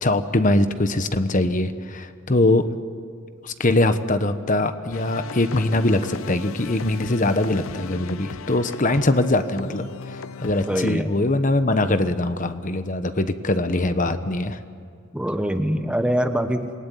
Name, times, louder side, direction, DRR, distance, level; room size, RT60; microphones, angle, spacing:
voice 1, 0.0-2.6 3.4-14.6, left 2 dB, 40° left, 10 dB, 1.2 m, -22 dB
sound 1, 4.9-11.0, left 4 dB, 75° left, 0.7 m, -37 dB
voice 2, 10.7-11.2 15.1-16.7, equal, 5° right, 7 dB, 1.1 m, -24 dB
27.5 x 20.0 x 9.4 m, 2.2 s
head